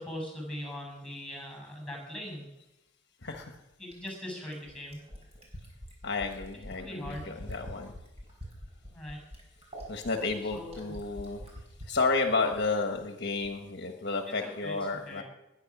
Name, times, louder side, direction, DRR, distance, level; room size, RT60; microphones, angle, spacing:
voice 1, 0.0-2.5 3.8-5.0 6.8-7.3 8.9-9.2 10.5-10.9 14.4-14.8 15.1-15.2, left 1 dB, 5° left, 2 dB, 6.6 m, -40 dB
voice 2, 3.2-3.6 6.0-7.9 9.9-11.4 11.9-15.2, left 3 dB, 55° left, 4 dB, 1.3 m, -31 dB
Fill (with liquid), 3.9-12.0 13.3-13.4, equal, 30° right, 5.7 m, -45 dB
21.0 x 9.8 x 6.0 m, 0.98 s
head